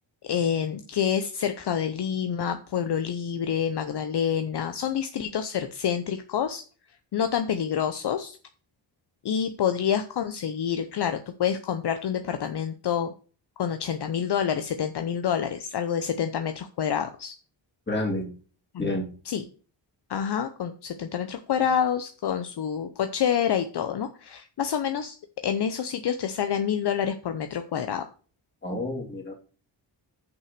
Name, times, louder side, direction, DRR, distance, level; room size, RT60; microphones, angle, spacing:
voice 1, 0.2-6.6 7.1-8.4 9.2-13.1 13.6-17.3 18.7-19.0 19.2-19.4 20.1-25.2 25.4-28.1, left 8 dB, 60° left, 8 dB, 0.8 m, -27 dB
voice 2, 17.9-18.3 18.8-19.1 28.6-29.3, left 1 dB, 25° left, 0 dB, 2.7 m, -29 dB
6.6 x 5.7 x 6.6 m, 0.39 s
cardioid pair, 100°, 46 cm